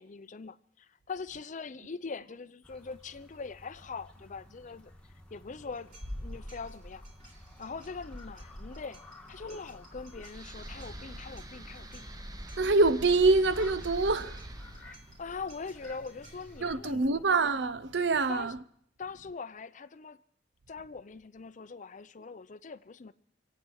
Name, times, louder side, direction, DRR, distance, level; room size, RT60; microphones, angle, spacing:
voice 1, 0.0-4.9 5.3-7.0 7.6-9.0 9.3-12.0 14.8-17.2 18.3-18.5 19.0-20.2 20.7-23.1, left 4 dB, 45° left, 0.5 m, -42 dB
sound 1, 2.6-16.8, left 1 dB, 5° left, 1.6 m, -54 dB
sound 2, 5.7-16.6, equal, 45° right, 3.2 m, -50 dB
sound 3, 10.3-17.5, right 1 dB, 20° right, 0.9 m, -45 dB
voice 2, 12.6-14.4 16.6-18.6, right 3 dB, 75° right, 0.7 m, -25 dB
26.0 x 8.8 x 6.3 m
head